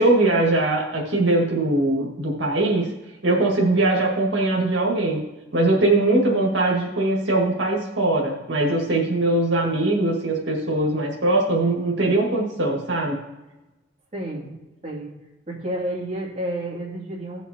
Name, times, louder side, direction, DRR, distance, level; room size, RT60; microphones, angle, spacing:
voice 1, 0.0-2.9 3.2-5.2 5.5-13.2, right 2 dB, 75° right, -1 dB, 1.8 m, -21 dB
voice 2, 14.1-14.5 14.8-15.1 15.5-17.4, right 1 dB, 35° right, -4 dB, 2.4 m, -30 dB
16.5 x 5.8 x 2.8 m, 1.0 s
head